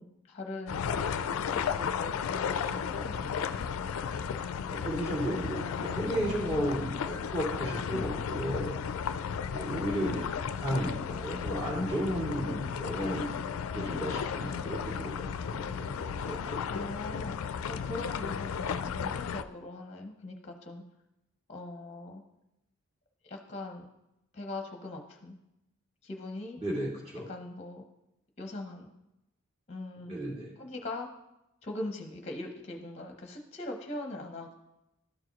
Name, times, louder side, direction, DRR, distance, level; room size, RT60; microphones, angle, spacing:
voice 1, 0.0-2.2 2.7-3.7 16.7-20.8 21.5-22.2 23.2-23.9 24.3-25.4 26.0-26.6 27.3-27.9 28.4-28.9 29.7-30.1 30.6-31.1 31.6-34.6, left 2 dB, 30° left, 3 dB, 0.8 m, -41 dB
sound 1, 0.7-19.4, left 7 dB, 85° left, 0.4 m, -34 dB
voice 2, 4.7-8.8 9.5-13.3 13.7-16.6 26.6-27.3 30.0-30.5, equal, 25° right, -6 dB, 2.5 m, -34 dB
12.5 x 4.7 x 3.1 m, 0.89 s
head